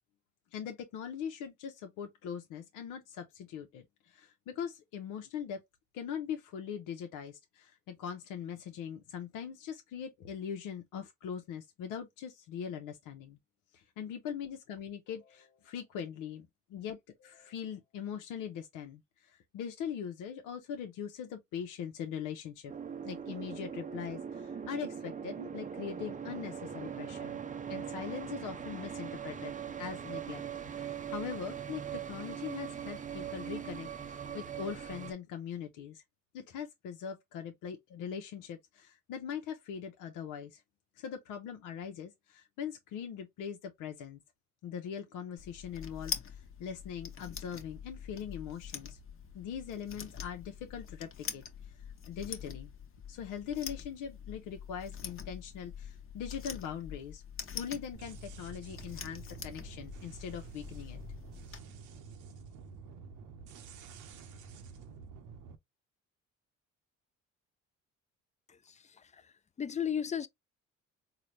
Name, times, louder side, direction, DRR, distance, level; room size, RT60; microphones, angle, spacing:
voice 1, 0.5-5.6 5.9-13.4 13.7-22.7 23.0-27.4 27.7-29.5 29.8-30.4 30.7-36.0 36.3-40.6 40.9-44.2 44.6-49.0 49.3-52.7 53.1-57.2 57.5-61.0, left 8 dB, 85° left, 0.7 m, -41 dB
sound 1, 22.7-35.1, right 8 dB, 25° right, 0.5 m, -41 dB
sound 2, 45.4-61.6, left 7 dB, 45° left, 1.0 m, -45 dB
sound 3, 57.9-65.6, right 5 dB, 75° right, 0.8 m, -49 dB
voice 2, 68.5-69.2 69.6-70.3, left 8 dB, 25° left, 0.4 m, -35 dB
3.9 x 2.1 x 3.0 m
supercardioid pair, 75°, 31 cm